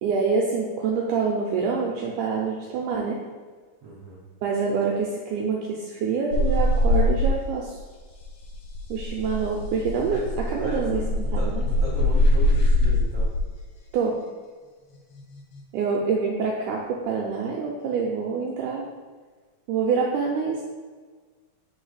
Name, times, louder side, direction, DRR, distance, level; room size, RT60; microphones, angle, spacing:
voice 1, 0.0-3.2 4.4-7.8 8.9-11.0 11.3-11.6 13.9-14.2 15.7-18.9 19.7-20.6, right 5 dB, 85° right, -1 dB, 1.8 m, -26 dB
voice 2, 3.8-4.2 10.1-10.2 10.6-11.1 11.3-13.3, right 1 dB, 70° right, -6 dB, 1.5 m, -36 dB
sound 1, 6.3-7.7 8.0-13.4 15.2-15.6, left 1 dB, 70° left, 2.1 m, -22 dB
4.6 x 4.3 x 4.8 m, 1.5 s
omnidirectional pair, 4.1 m